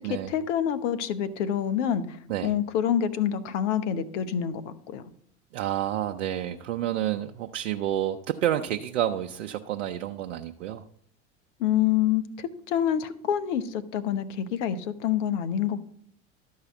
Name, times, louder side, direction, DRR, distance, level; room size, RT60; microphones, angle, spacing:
voice 1, 0.1-2.2 2.4-4.6 4.9-5.0 11.6-15.8, left 9 dB, 70° left, 13 dB, 1.0 m, -27 dB
voice 2, 5.5-10.8, right 11 dB, 80° right, 5 dB, 0.7 m, -29 dB
12.5 x 4.8 x 7.0 m, 0.65 s
hypercardioid pair, 75°, 37 cm